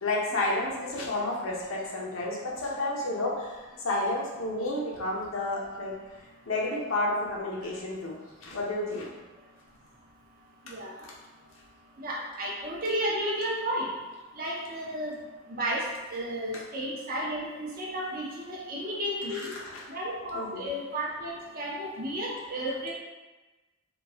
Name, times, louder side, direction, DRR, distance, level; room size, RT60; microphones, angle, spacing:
voice 1, 0.0-5.9 6.5-9.1 19.3-19.8 20.3-20.7, left 2 dB, 70° left, -3 dB, 0.6 m, -31 dB
voice 2, 12.0-13.9 14.4-15.2 15.6-15.8 16.1-19.5 19.9-22.9, equal, 45° right, -4 dB, 0.5 m, -33 dB
2.5 x 2.3 x 3.3 m, 1.2 s
head